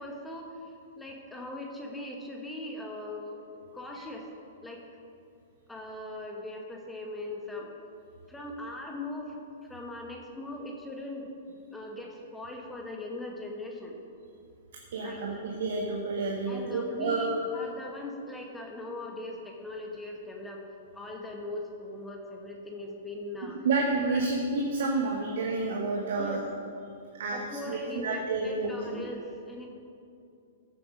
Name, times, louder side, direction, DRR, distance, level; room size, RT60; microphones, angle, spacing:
voice 1, 0.0-4.3 4.6-4.8 5.7-7.7 8.3-9.4 9.7-14.0 15.0-15.5 16.5-20.6 20.9-23.7 24.1-24.2 26.2-26.4 27.3-29.7, left 1 dB, 10° left, 0 dB, 1.7 m, -40 dB
voice 2, 14.9-17.4 23.6-26.4 27.2-29.0, right 3 dB, 55° right, 0 dB, 1.4 m, -30 dB
14.5 x 7.8 x 5.2 m, 2.5 s
figure-of-eight pair, 105°, 0 cm